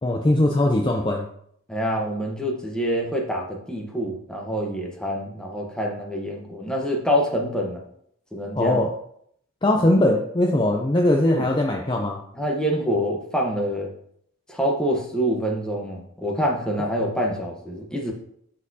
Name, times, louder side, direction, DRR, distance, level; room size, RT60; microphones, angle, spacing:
voice 1, 0.0-1.3 8.5-8.9 9.6-12.2, left 1 dB, 20° left, 1 dB, 0.5 m, -20 dB
voice 2, 1.7-7.8 8.3-8.8 11.2-11.5 12.4-13.9 14.5-18.1, equal, 5° left, -1 dB, 1.0 m, -26 dB
12.0 x 4.3 x 2.8 m, 0.69 s
head